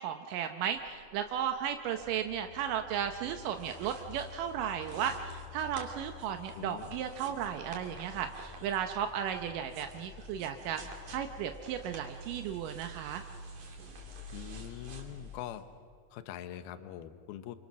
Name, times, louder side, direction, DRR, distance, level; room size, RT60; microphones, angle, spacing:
voice 1, 0.0-10.8 11.1-13.2, right 9 dB, 80° right, 6 dB, 1.9 m, -35 dB
sound 1, 0.7-15.4, left 2 dB, 45° left, 2.3 m, -50 dB
sound 2, 3.2-15.6, right 3 dB, 50° right, 3.8 m, -52 dB
voice 2, 6.5-7.0 14.3-15.6 16.1-17.6, left 11 dB, 75° left, 11 dB, 2.6 m, -43 dB
28.0 x 24.5 x 6.2 m, 2.3 s
omnidirectional pair, 4.9 m